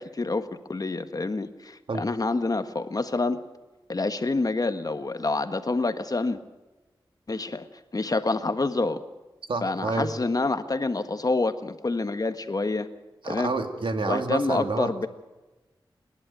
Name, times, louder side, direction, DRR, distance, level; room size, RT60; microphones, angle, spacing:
voice 1, 0.0-3.4 3.9-6.4 7.3-7.7 7.9-9.0 9.6-12.9 13.3-13.5 14.1-15.1, left 3 dB, 45° left, 9 dB, 1.5 m, -27 dB
voice 2, 9.5-10.1 13.2-14.9, right 3 dB, 75° right, 6 dB, 2.3 m, -28 dB
28.0 x 11.0 x 9.2 m, 1.1 s
wide cardioid pair, 65°, 9 cm